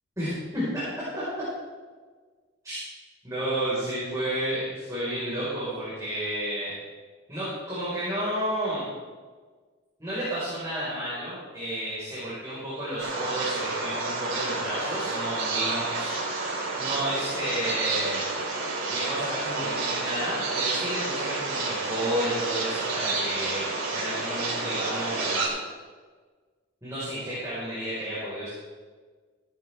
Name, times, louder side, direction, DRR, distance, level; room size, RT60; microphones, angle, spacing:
voice 1, 0.2-0.8 1.1-1.2 2.6-2.8 3.2-6.7 7.3-8.8 10.0-16.1 16.5-18.2 18.9-23.6 23.9-25.6 26.8-28.5, right 1 dB, 15° right, -11 dB, 4.6 m, -31 dB
sound 1, 13.0-25.5, right 3 dB, 90° right, 3.9 m, -30 dB
16.5 x 11.0 x 3.5 m, 1.5 s
head